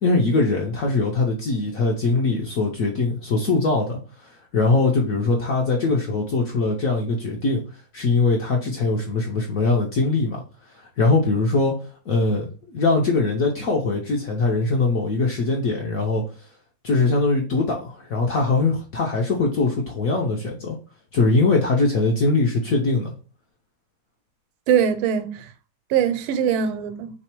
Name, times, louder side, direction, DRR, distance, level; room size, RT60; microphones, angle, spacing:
voice 1, 0.0-4.0 4.5-7.6 7.9-10.4 11.0-11.7 12.1-16.2 16.8-20.8 21.1-23.1, left 3 dB, 65° left, 0.9 m, -21 dB
voice 2, 24.7-25.5 25.9-27.1, right 8 dB, 90° right, 1.5 m, -21 dB
3.3 x 3.2 x 4.4 m
omnidirectional pair, 2.2 m